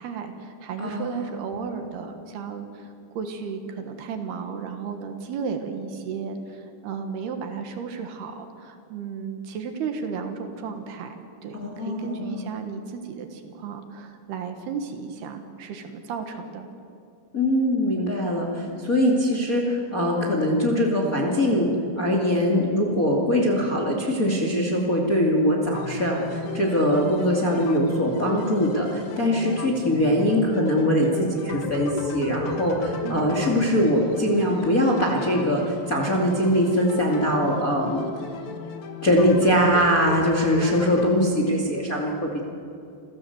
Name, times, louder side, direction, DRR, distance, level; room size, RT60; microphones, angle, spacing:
voice 1, 0.0-11.2 11.4-16.7 33.0-33.3, right 6 dB, 70° right, 6 dB, 3.3 m, -34 dB
voice 2, 0.8-1.3 11.6-12.4 17.3-21.7 22.0-38.1 39.0-42.4, equal, 25° left, 0 dB, 2.0 m, -22 dB
sound 1, 25.7-41.1, left 4 dB, 90° left, 1.2 m, -35 dB
28.0 x 16.0 x 8.0 m, 2.6 s
omnidirectional pair, 5.1 m